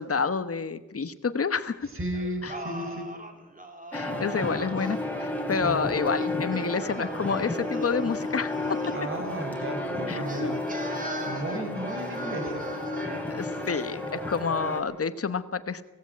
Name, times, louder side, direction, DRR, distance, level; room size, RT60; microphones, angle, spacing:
voice 1, 0.0-1.9 2.4-2.5 3.9-8.8 10.1-10.5 13.3-15.8, left 5 dB, 50° left, 12 dB, 1.2 m, -29 dB
voice 2, 1.8-3.1 5.5-5.9 8.9-11.0 11.2-12.6, right 1 dB, 45° right, 4 dB, 4.8 m, -34 dB
Singing, 2.1-4.9 6.0-9.2 10.2-13.3, right 2 dB, 25° right, 2.9 m, -40 dB
sound 1, 3.9-14.8, left 2 dB, 5° left, 3.7 m, -32 dB
17.0 x 16.0 x 9.6 m, 1.1 s
wide cardioid pair, 100°, 29 cm